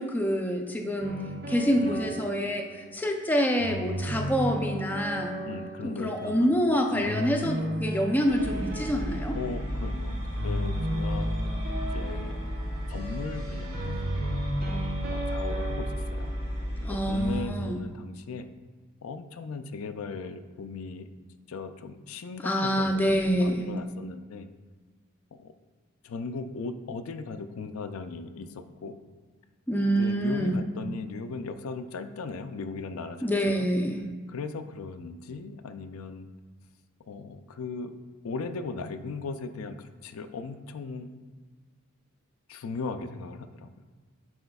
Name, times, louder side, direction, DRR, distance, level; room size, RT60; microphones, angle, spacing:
voice 1, 0.0-2.7 2.9-5.4 5.8-9.4 16.8-17.8 22.4-23.7 29.7-30.6 33.2-34.0, equal, 10° left, 2 dB, 0.5 m, -26 dB
sound 1, 1.0-3.0 3.6-6.5 7.0-9.7 10.4-16.7 17.2-17.5, equal, 45° right, 0.8 m, -35 dB
voice 2, 1.8-2.1 5.4-6.5 6.9-7.1 9.3-10.2 10.4-11.3 11.8-12.3 12.9-14.0 14.7-14.8 15.1-16.3 16.9-18.5 19.0-21.1 21.5-23.1 23.4-24.5 25.4-25.5 26.0-29.0 29.9-33.3 33.6-33.7 34.3-36.3 37.1-37.9 38.2-41.1 42.5-43.7, left 4 dB, 80° left, 9 dB, 0.4 m, -37 dB
sound 2, 8.3-17.4, equal, 60° right, 1.4 m, -33 dB
10.5 x 4.3 x 2.3 m, 1.5 s
head